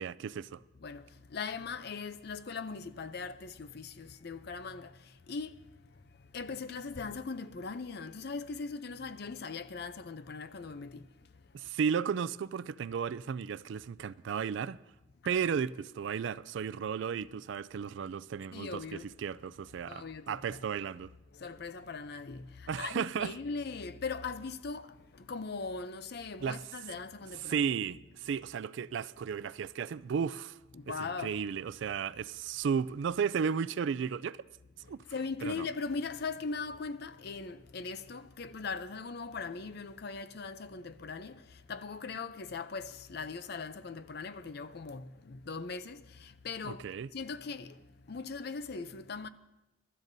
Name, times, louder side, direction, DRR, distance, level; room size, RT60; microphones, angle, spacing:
voice 1, 0.0-0.6 11.5-14.8 15.3-21.1 22.7-23.3 26.4-26.6 27.4-30.6 31.2-34.4 34.9-35.0 35.4-35.6 46.6-47.1, right 7 dB, 65° right, 0.3 m, -34 dB
voice 2, 0.8-5.6 6.3-11.1 15.2-15.4 18.5-19.1 19.8-20.6 21.3-27.6 30.7-31.4 34.8-46.8 47.1-49.3, left 4 dB, 50° left, 0.5 m, -40 dB
23.0 x 12.5 x 2.7 m
head